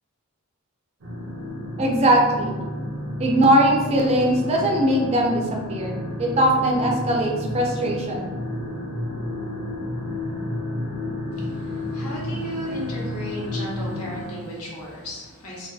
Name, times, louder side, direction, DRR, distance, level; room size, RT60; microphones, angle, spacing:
sound 1, 1.0-14.3, left 1 dB, 85° right, 0.6 m, -31 dB
voice 1, 1.8-2.6 3.2-8.3, right 1 dB, 30° right, 0 dB, 0.3 m, -20 dB
voice 2, 11.9-15.7, equal, 90° left, -4 dB, 0.8 m, -34 dB
2.5 x 2.2 x 2.3 m, 1.3 s
head